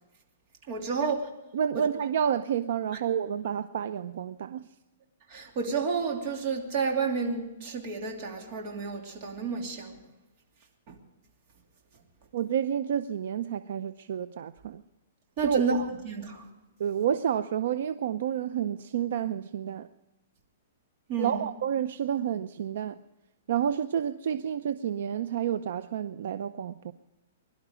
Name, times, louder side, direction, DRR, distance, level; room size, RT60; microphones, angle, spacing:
voice 1, 0.7-1.2 1.7-1.8 5.3-10.0 10.9-11.0 15.4-16.5 21.1-21.5, right 5 dB, 35° right, 2 dB, 2.8 m, -30 dB
voice 2, 1.5-4.7 12.3-14.8 15.4-15.8 16.8-19.9 21.2-23.0 23.5-26.9, right 9 dB, 60° right, 13 dB, 0.6 m, -30 dB
21.5 x 12.0 x 5.0 m, 1.0 s
hypercardioid pair, 165°, 0 cm